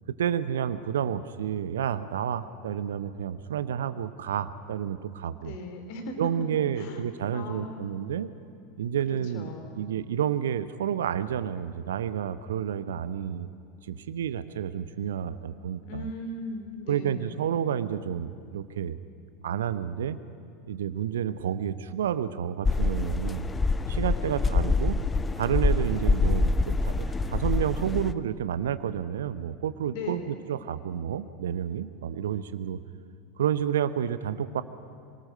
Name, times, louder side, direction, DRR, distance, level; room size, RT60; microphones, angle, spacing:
voice 1, 0.1-5.5 6.2-8.3 8.8-13.5 13.9-16.1 16.9-19.0 19.4-20.2 20.7-23.5 23.9-25.0 25.4-32.8 33.4-34.6, right 9 dB, 65° right, 14 dB, 0.7 m, -30 dB
voice 2, 5.4-6.3 6.8-7.0 7.3-8.0 9.1-9.8 15.8-17.5 29.9-30.4, left 3 dB, 55° left, 5 dB, 3.1 m, -38 dB
sound 1, 22.6-28.1, left 3 dB, 15° left, 0.7 m, -25 dB
26.0 x 19.5 x 6.5 m, 2.4 s
figure-of-eight pair, 80°, 0 cm